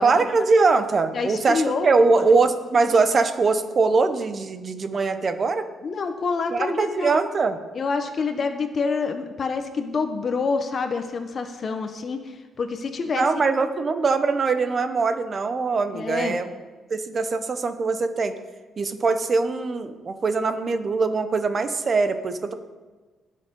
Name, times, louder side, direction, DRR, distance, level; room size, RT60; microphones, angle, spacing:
voice 1, 0.0-5.7 6.5-7.6 13.2-16.5 16.9-18.3 18.8-22.5, right 4 dB, 30° right, 9 dB, 0.9 m, -22 dB
voice 2, 1.1-2.2 5.8-7.2 7.7-13.3 15.9-16.4, left 4 dB, 35° left, 7 dB, 0.9 m, -27 dB
19.5 x 6.6 x 5.3 m, 1.3 s
cardioid pair, 155°, 0 cm